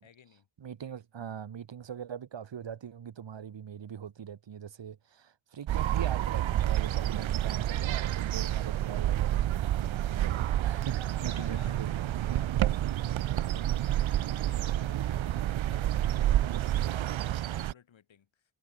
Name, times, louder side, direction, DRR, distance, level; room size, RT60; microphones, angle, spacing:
voice 1, 0.0-0.5 11.2-11.9 12.3-18.6, left 8 dB, 80° left, 5.5 m, -57 dB
voice 2, 0.6-12.0, right 8 dB, 70° right, 4.1 m, -41 dB
sound 1, 5.7-17.7, right 12 dB, 85° right, 0.9 m, -29 dB
wide cardioid pair, 145°, 45 cm